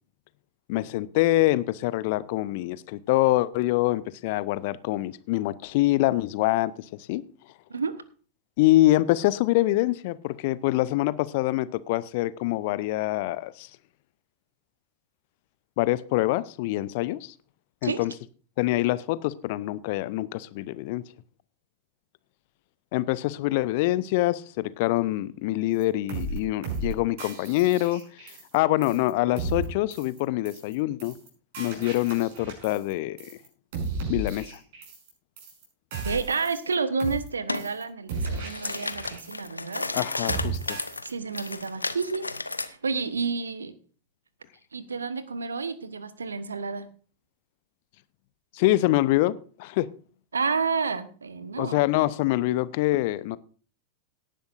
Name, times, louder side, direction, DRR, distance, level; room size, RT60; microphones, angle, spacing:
voice 1, 0.7-7.2 8.6-13.7 15.8-17.3 17.8-18.1 18.6-21.0 22.9-31.2 31.6-33.3 34.1-34.6 39.9-40.8 48.5-49.9 51.6-53.4, left 17 dB, 50° left, 0.6 m, -25 dB
sound 1, 25.8-25.9 26.1-26.4 26.6-26.9 27.2-28.6 28.8-29.1 29.4-29.6 29.9-30.2 30.5-30.7 31.0-31.3 31.5-32.9 33.2-33.5 33.7-35.1 35.4-35.6 35.9-36.7 37.0-37.3 37.5-37.8 38.1-39.5 39.7-40.0 40.3-41.1 41.4-41.6, right 4 dB, 55° right, 5.9 m, -34 dB
voice 2, 36.0-39.9 41.0-42.3 42.6-43.7 44.7-46.9 50.3-51.8, right 4 dB, 75° right, 1.1 m, -30 dB
sound 2, 37.5-37.7 38.1-42.7, left 3 dB, 80° left, 0.7 m, -33 dB
18.0 x 10.5 x 2.6 m
figure-of-eight pair, 90°, 0 cm